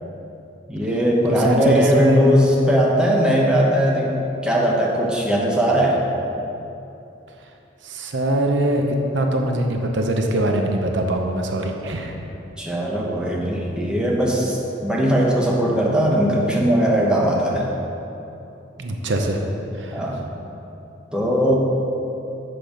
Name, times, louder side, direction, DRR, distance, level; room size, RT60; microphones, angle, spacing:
voice 1, 0.7-4.1 4.4-6.0 12.6-17.7 19.9-20.2 21.1-21.6, equal, 5° right, -3 dB, 1.0 m, -19 dB
voice 2, 1.3-2.3 7.8-12.2 18.8-19.5 19.8-20.0, right 1 dB, 75° right, 3 dB, 0.8 m, -22 dB
7.8 x 6.6 x 5.1 m, 2.9 s
head